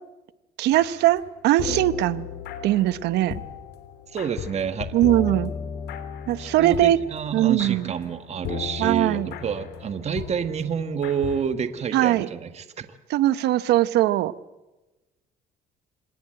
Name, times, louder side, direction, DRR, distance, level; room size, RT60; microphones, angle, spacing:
voice 1, 0.6-2.3 2.6-3.4 4.9-5.5 6.3-7.0 7.3-7.9 8.8-9.3 11.9-12.3 13.1-14.3, right 14 dB, 80° right, 16 dB, 0.9 m, -21 dB
sound 1, 0.7-1.3 1.6-11.4, left 8 dB, 80° left, 3.2 m, -36 dB
voice 2, 4.1-4.9 6.4-12.9, right 7 dB, 40° right, 10 dB, 1.5 m, -28 dB
25.5 x 20.0 x 7.7 m, 1.1 s
cardioid pair, 110°, 17 cm